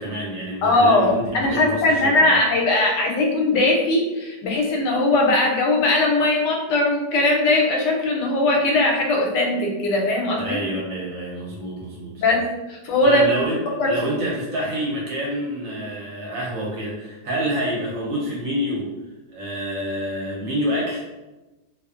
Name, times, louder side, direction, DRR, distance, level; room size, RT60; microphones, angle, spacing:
voice 1, 0.0-2.3 10.4-12.2 13.0-18.9 19.3-21.0, equal, 65° right, -4 dB, 0.9 m, -27 dB
voice 2, 0.6-10.6 12.2-12.4 12.7-13.2 13.8-13.9, left 2 dB, 90° left, 0 dB, 1.2 m, -19 dB
2.5 x 2.4 x 2.3 m, 1.1 s
omnidirectional pair, 1.8 m